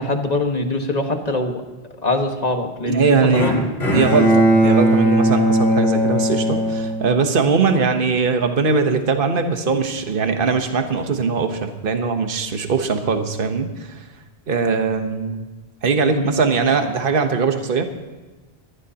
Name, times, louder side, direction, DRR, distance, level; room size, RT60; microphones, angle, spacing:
voice 1, 0.0-1.6 2.0-3.5 7.5-7.6 16.1-16.5, left 2 dB, 40° left, 4 dB, 1.7 m, -23 dB
voice 2, 2.9-14.0 14.5-15.4 15.8-17.8, right 5 dB, 55° right, 6 dB, 1.3 m, -20 dB
Bowed string instrument, 3.3-7.6, right 1 dB, 75° left, 5.6 m, -18 dB
21.5 x 16.0 x 2.9 m, 1.3 s
omnidirectional pair, 1.1 m